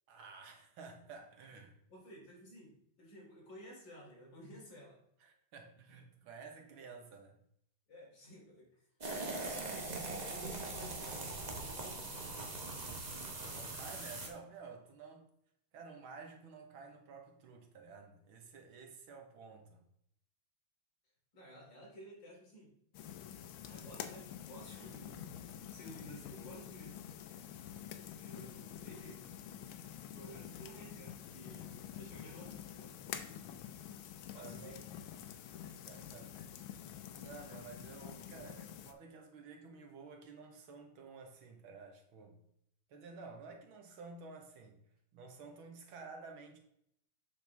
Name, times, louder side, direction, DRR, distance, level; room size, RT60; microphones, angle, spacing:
voice 1, 0.1-1.8 5.2-7.4 13.4-15.3 15.7-19.8 34.3-34.8 35.5-36.6 37.1-42.4 42.9-44.8 45.1-46.6, right 4 dB, 85° right, 2.1 m, -52 dB
voice 2, 1.9-5.0 7.9-8.9 9.6-11.3 11.5-12.1 21.3-22.7 23.6-25.3 25.7-26.9 28.2-29.2 30.1-32.9 33.2-33.4 34.3-34.8, equal, 65° left, 3.8 m, -54 dB
sound 1, 9.0-14.3, right 2 dB, 30° right, 0.9 m, -41 dB
sound 2, 22.9-38.9, left 9 dB, 90° left, 1.5 m, -48 dB
7.8 x 6.4 x 3.5 m
omnidirectional pair, 2.2 m